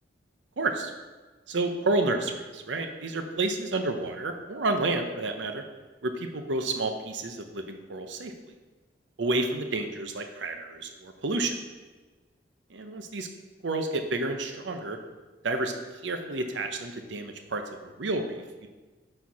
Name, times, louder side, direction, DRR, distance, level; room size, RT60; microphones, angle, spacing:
voice 1, 0.6-0.9 1.5-5.6 6.0-8.3 9.2-11.6 12.7-13.3 13.6-15.0 15.4-15.7 16.0-18.7, right 2 dB, 80° right, 6 dB, 0.8 m, -30 dB
8.4 x 4.5 x 4.7 m, 1.3 s
head